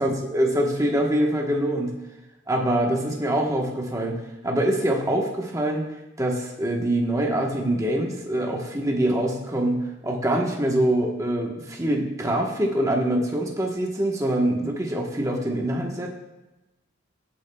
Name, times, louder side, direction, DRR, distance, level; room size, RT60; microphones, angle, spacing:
voice 1, 0.0-1.9 2.5-5.9 6.2-16.1, right 1 dB, 15° right, 0 dB, 1.1 m, -24 dB
15.5 x 8.6 x 2.3 m, 1.0 s
head